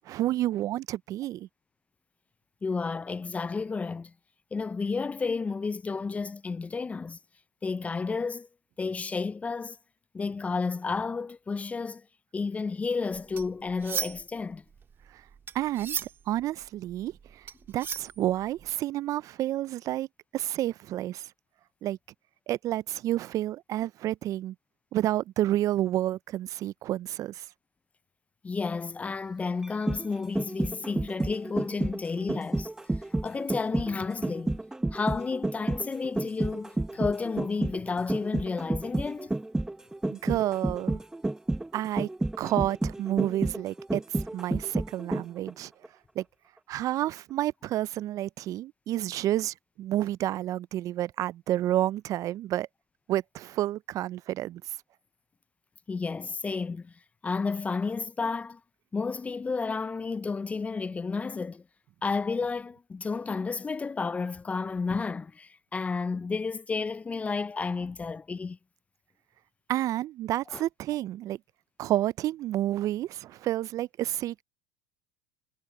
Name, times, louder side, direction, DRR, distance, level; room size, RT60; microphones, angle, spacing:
voice 1, 0.1-1.5 15.1-15.2 15.5-20.1 20.3-21.2 21.8-22.0 22.5-24.5 24.9-27.5 40.1-41.0 41.7-42.1 42.4-45.7 46.2-46.3 46.7-52.7 53.1-54.6 69.7-71.4 71.8-74.4, right 13 dB, 45° right, 0.4 m, -30 dB
voice 2, 2.6-4.1 4.5-7.2 7.6-8.5 8.8-9.8 10.1-12.0 12.3-14.6 28.4-32.7 33.2-34.6 34.9-39.3 55.9-56.9 57.2-58.6 58.9-61.6 62.0-68.6 70.5-70.6, left 4 dB, 20° left, 0.4 m, -31 dB
sound 1, 13.1-14.4 14.7-18.7, right 7 dB, 30° right, 1.7 m, -36 dB
sound 2, 29.6-45.5 45.8-45.9, right 2 dB, 10° right, 1.0 m, -30 dB
hypercardioid pair, 90°, 8 cm